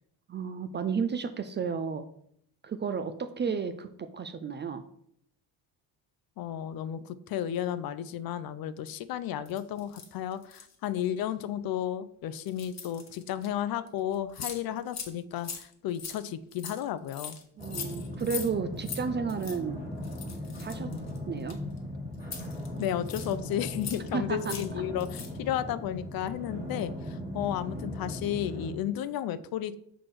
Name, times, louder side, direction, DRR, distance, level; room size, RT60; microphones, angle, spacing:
voice 1, 0.3-2.1 2.6-4.8 17.6-19.8 20.6-20.9 21.3-21.6 24.1-24.6, right 6 dB, 25° right, 10 dB, 0.3 m, -32 dB
voice 2, 6.4-17.4 22.8-29.7, left 11 dB, 55° left, 14 dB, 0.5 m, -33 dB
sound 1, 9.4-10.7 11.3-11.5 12.5-13.5 13.9-14.0 14.1-14.6 14.9-15.1 15.4-18.5 18.8-19.0 19.3-19.6 20.0-21.8 22.2-23.3 23.7-24.1 24.4-24.7 25.0-25.4, left 6 dB, 35° left, 1.2 m, -41 dB
sound 2, 17.6-28.7, left 1 dB, 5° right, 1.8 m, -38 dB
6.2 x 4.6 x 4.6 m, 0.68 s
cardioid pair, 125°, 43 cm